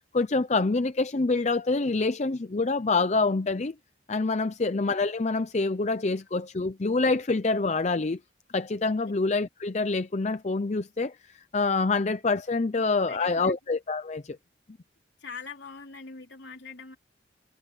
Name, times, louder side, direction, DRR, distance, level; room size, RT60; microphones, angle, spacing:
voice 1, 0.1-3.7 4.1-8.2 8.5-14.4, left 3 dB, 35° left, 0.6 m, -26 dB
voice 2, 13.1-13.5 15.2-17.0, left 5 dB, 65° left, 4.0 m, -43 dB
head